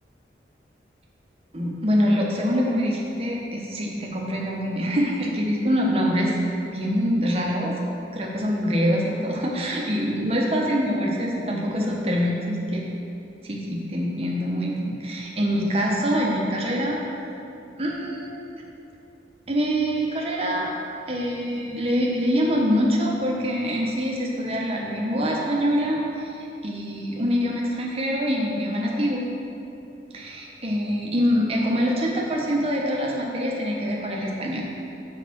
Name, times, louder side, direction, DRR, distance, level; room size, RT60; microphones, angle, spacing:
voice 1, 1.5-6.3 6.7-7.8 8.1-12.8 13.4-17.0 17.8-18.4 19.5-20.7 21.1-26.3 26.6-29.3 30.1-34.6, equal, 35° right, -2 dB, 1.0 m, -24 dB
6.6 x 4.8 x 6.1 m, 2.7 s
head